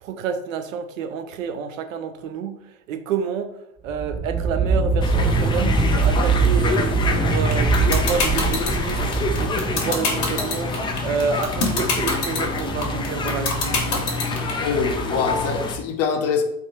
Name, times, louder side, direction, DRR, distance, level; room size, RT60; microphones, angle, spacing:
voice 1, 0.0-2.6 2.9-3.5 3.8-9.0 9.4-10.7 11.0-13.6, right 6 dB, 75° right, 9 dB, 0.6 m, -28 dB
sound 1, 3.9-10.3, right 4 dB, 15° right, 0.8 m, -22 dB
sound 2, 5.0-15.7, left 2 dB, 15° left, 0.3 m, -26 dB
sound 3, 7.5-14.5, left 4 dB, 65° left, 1.4 m, -23 dB
voice 2, 14.6-16.4, left 5 dB, 40° left, 5 dB, 0.7 m, -24 dB
3.5 x 2.3 x 4.2 m, 0.85 s
hypercardioid pair, 95°, 39 cm